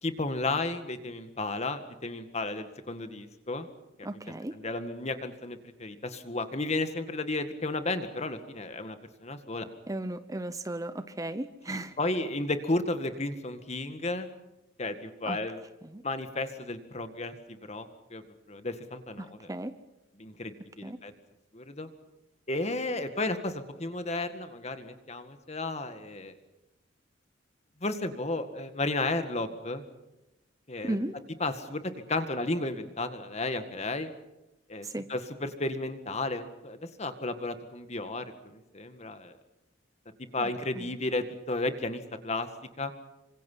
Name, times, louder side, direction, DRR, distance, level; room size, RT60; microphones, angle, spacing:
voice 1, 0.0-3.7 4.0-4.1 4.5-9.7 11.7-14.3 14.8-15.6 16.0-18.2 18.5-19.5 20.2-21.1 21.5-21.9 22.5-26.3 27.8-29.8 30.7-31.0 31.4-34.1 34.7-39.4 40.3-42.5 42.8-42.9, left 2 dB, 35° left, 9 dB, 1.9 m, -33 dB
voice 2, 4.0-4.6 9.9-11.9 15.3-15.4 15.9-16.0 19.2-19.7 20.8-21.0 30.8-31.2 34.8-35.0 40.4-40.5 40.8-40.9, right 1 dB, 20° right, 12 dB, 0.8 m, -35 dB
27.5 x 25.5 x 5.7 m, 0.98 s
head